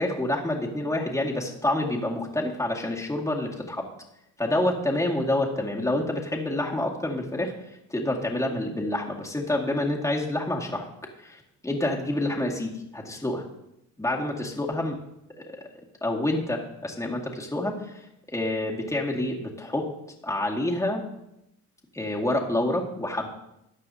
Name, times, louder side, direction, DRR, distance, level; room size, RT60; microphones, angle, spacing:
voice 1, 0.0-3.8 4.4-7.5 7.9-10.9 11.2-13.4 14.0-15.0 15.4-15.7 16.0-18.0 18.3-19.9 20.2-21.0 21.9-23.3, left 1 dB, 10° left, -2 dB, 2.1 m, -28 dB
14.0 x 8.9 x 2.8 m, 0.83 s
supercardioid pair, 70°, 38 cm